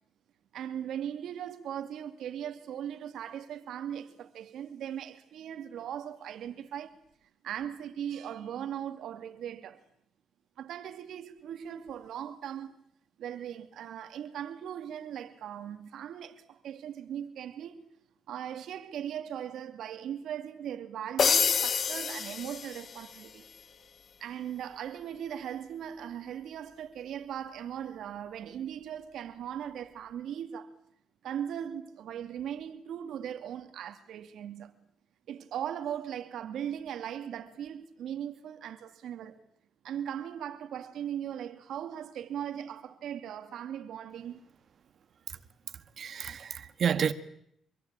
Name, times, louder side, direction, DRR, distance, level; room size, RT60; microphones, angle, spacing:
voice 1, 0.5-7.0 7.4-9.8 10.6-12.7 13.2-17.8 18.3-23.5 24.2-30.7 31.2-34.8 35.3-39.4 39.8-44.4, right 9 dB, 75° right, 2.4 m, -39 dB
sound 1, 21.2-23.3, left 6 dB, 50° left, 1.2 m, -28 dB
voice 2, 46.0-47.1, right 7 dB, 55° right, 1.8 m, -30 dB
26.0 x 24.0 x 9.0 m
cardioid pair, 90°, 0 cm